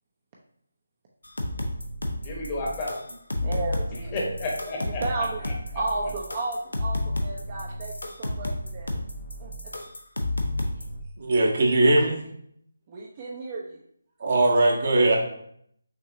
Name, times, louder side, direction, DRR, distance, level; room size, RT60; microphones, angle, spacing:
sound 1, 1.2-11.0, left 1 dB, 80° left, 0.7 m, -31 dB
voice 1, 2.2-3.1 4.1-5.5, left 2 dB, 25° left, -2 dB, 1.0 m, -32 dB
voice 2, 3.4-4.3 4.8-5.4 5.7-7.9 8.2-8.9 9.4-9.5 12.9-13.8, right 3 dB, 30° right, -3 dB, 0.6 m, -33 dB
voice 3, 11.2-12.2 14.2-15.2, right 2 dB, 45° right, 0 dB, 0.9 m, -20 dB
6.0 x 2.8 x 2.6 m, 0.68 s
figure-of-eight pair, 155°, 0 cm